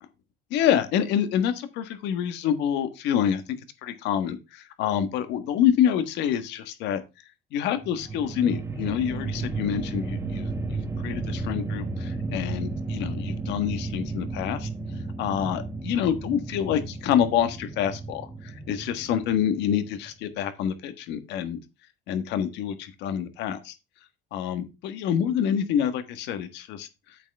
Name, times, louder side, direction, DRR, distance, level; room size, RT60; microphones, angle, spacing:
voice 1, 0.5-7.0 7.5-14.7 15.2-21.6 22.1-23.7 24.3-27.2, left 9 dB, 75° left, 10 dB, 1.5 m, -27 dB
sound 1, 7.8-20.1, right 3 dB, 15° right, 1.3 m, -33 dB
8.5 x 7.9 x 3.4 m, 0.26 s
cardioid pair, 150°, 18 cm